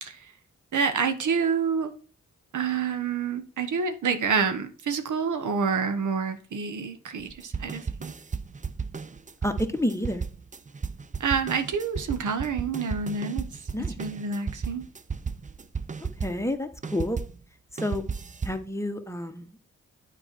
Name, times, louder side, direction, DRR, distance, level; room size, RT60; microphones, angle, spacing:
voice 1, 0.7-1.9 2.5-8.1 11.2-13.4 14.0-14.8, right 5 dB, 75° right, 1.1 m, -28 dB
sound 1, 7.2-17.4 17.8-18.6, right 5 dB, 25° right, 0.6 m, -34 dB
voice 2, 9.4-10.2 13.7-14.0 16.2-17.2 17.7-18.0 18.4-19.6, left 1 dB, 10° left, 1.1 m, -29 dB
9.0 x 4.6 x 4.5 m
cardioid pair, 55°, 30 cm